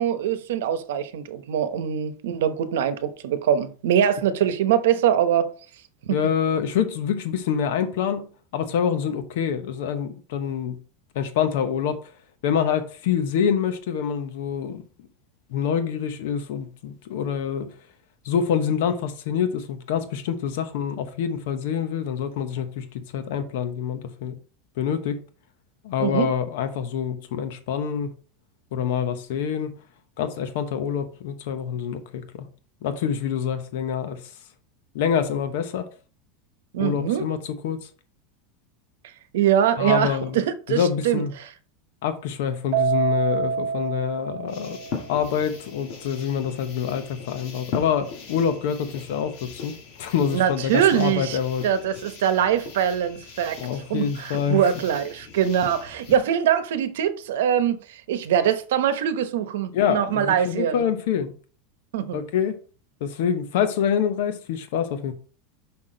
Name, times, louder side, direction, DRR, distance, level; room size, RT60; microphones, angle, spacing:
voice 1, 0.0-5.5 6.0-6.1 26.0-26.3 36.7-37.3 39.3-41.5 50.3-51.4 51.6-53.6 53.9-60.8 61.9-62.2, right 9 dB, 85° right, 0.9 m, -23 dB
voice 2, 6.1-10.8 11.1-12.1 12.4-14.8 15.5-17.7 18.2-24.4 24.8-25.3 25.8-28.1 28.7-29.8 30.2-32.5 32.8-34.2 34.9-35.9 36.8-37.9 39.8-40.4 40.7-41.3 42.0-44.8 45.1-51.7 53.6-54.7 59.7-61.3 62.1-62.6 63.0-65.1, left 8 dB, 60° left, 0.9 m, -26 dB
Keyboard (musical), 42.7-45.2, right 6 dB, 40° right, 1.8 m, -26 dB
sound 1, 44.5-56.2, left 5 dB, 40° left, 1.8 m, -40 dB
5.9 x 5.8 x 3.9 m
supercardioid pair, 180°, 0 cm